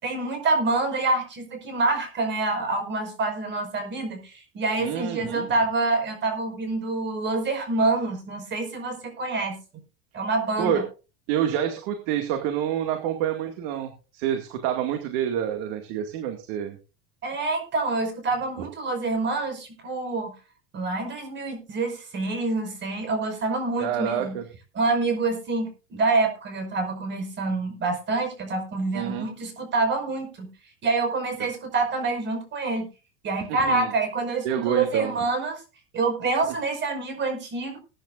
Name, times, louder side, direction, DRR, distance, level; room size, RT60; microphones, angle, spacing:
voice 1, 0.0-9.6 10.1-10.8 17.2-20.3 20.7-24.4 24.7-30.5 30.8-32.9 33.2-35.6 35.9-37.8, right 3 dB, 35° right, 5 dB, 5.4 m, -26 dB
voice 2, 4.8-5.5 10.6-10.8 11.3-16.8 23.8-24.5 28.9-29.3 33.5-33.9 34.4-35.1, right 9 dB, 70° right, 5 dB, 2.2 m, -27 dB
21.5 x 10.0 x 2.5 m, 0.33 s
supercardioid pair, 130°, 32 cm